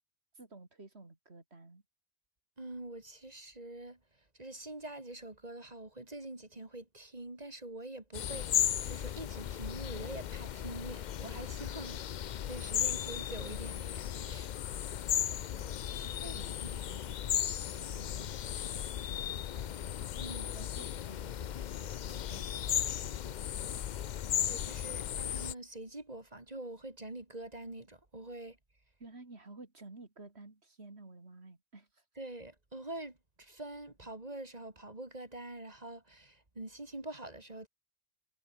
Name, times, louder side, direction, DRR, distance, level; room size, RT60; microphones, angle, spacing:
voice 1, 0.3-1.8 15.5-23.7 29.0-32.0, right 3 dB, 85° right, 3.6 m, -54 dB
voice 2, 2.6-4.0 4.4-8.5 8.8-14.5 14.9-15.0 16.2-16.8 20.2-20.5 24.5-28.6 32.2-37.7, right 2 dB, 40° right, 3.0 m, -45 dB
sound 1, 8.1-25.5, left 10 dB, 55° left, 0.6 m, -36 dB
omnidirectional pair, 1.1 m